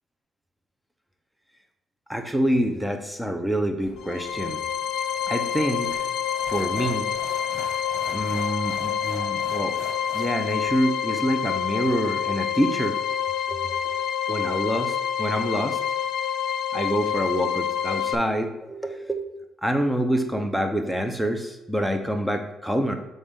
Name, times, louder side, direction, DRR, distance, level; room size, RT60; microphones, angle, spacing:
voice 1, 2.1-4.6 5.3-6.1 6.5-7.1 8.1-9.8 10.1-13.0 13.5-13.9 14.3-15.8 16.7-19.3 19.6-22.9, equal, 5° right, 5 dB, 0.8 m, -26 dB
sound 1, 3.8-10.7, left 2 dB, 45° left, 1.8 m, -44 dB
sound 2, 4.0-18.1, left 8 dB, 80° left, 0.4 m, -27 dB
7.0 x 3.9 x 3.7 m, 0.95 s
cardioid pair, 90°, 0 cm